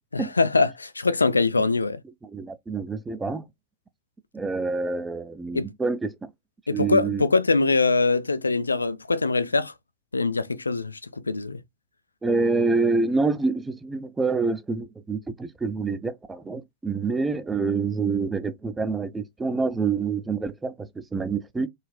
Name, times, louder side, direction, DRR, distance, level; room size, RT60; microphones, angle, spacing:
voice 1, 0.1-2.0 5.5-5.7 6.7-9.7 10.1-11.0 11.2-11.6, left 3 dB, 80° left, 0.3 m, -23 dB
voice 2, 2.2-3.4 4.3-6.3 6.7-7.2 12.2-21.7, right 4 dB, 10° right, 0.4 m, -27 dB
3.8 x 2.0 x 2.2 m
figure-of-eight pair, 90°, 0 cm